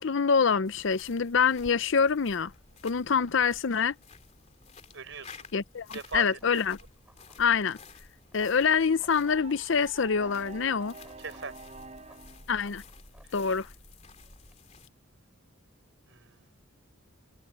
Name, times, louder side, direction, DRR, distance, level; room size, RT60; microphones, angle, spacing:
voice 1, 0.0-2.5 2.8-3.9 5.5-6.8 7.4-7.8 8.3-10.9 12.5-12.8 13.3-13.7, left 6 dB, 60° left, 0.6 m, -25 dB
sound 1, 0.6-14.9, left 4 dB, 30° left, 3.2 m, -53 dB
voice 2, 4.9-5.5 5.9-6.6 11.2-11.6 16.1-16.5, right 4 dB, 60° right, 4.9 m, -40 dB
sound 2, 5.8-14.6, equal, 5° right, 6.7 m, -57 dB
sound 3, 8.4-12.5, right 3 dB, 35° right, 3.7 m, -48 dB
head